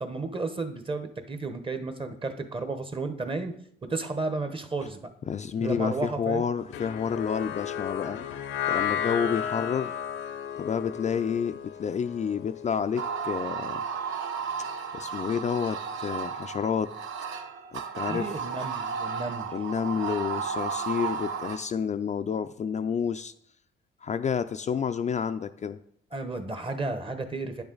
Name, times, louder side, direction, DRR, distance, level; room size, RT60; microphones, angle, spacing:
voice 1, 0.0-3.5 3.8-5.1 5.6-6.4 18.1-19.5 26.1-27.6, right 3 dB, 25° right, 8 dB, 1.1 m, -33 dB
voice 2, 5.3-8.2 8.7-9.9 10.6-13.8 14.9-16.9 17.7-18.4 19.5-23.3 24.0-25.8, left 7 dB, 35° left, 9 dB, 0.4 m, -29 dB
sound 1, 6.7-13.1, left 9 dB, 85° left, 0.7 m, -33 dB
sound 2, 12.9-21.6, right 6 dB, 75° right, 0.8 m, -33 dB
9.4 x 7.1 x 3.9 m, 0.69 s
cardioid pair, 90°, 20 cm